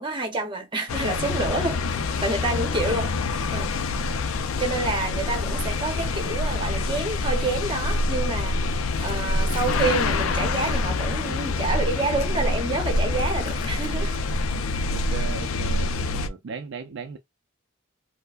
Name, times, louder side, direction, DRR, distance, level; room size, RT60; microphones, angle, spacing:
voice 1, 0.0-1.8 2.2-3.8 4.6-14.2, right 2 dB, 25° right, 0.9 m, -28 dB
sound 1, 0.9-16.3, left 3 dB, 85° left, 0.4 m, -26 dB
Gurgling / Toilet flush, 8.8-14.2, left 5 dB, 40° left, 0.6 m, -43 dB
voice 2, 14.9-17.2, right 4 dB, 60° right, 0.4 m, -37 dB
4.4 x 2.1 x 2.4 m
head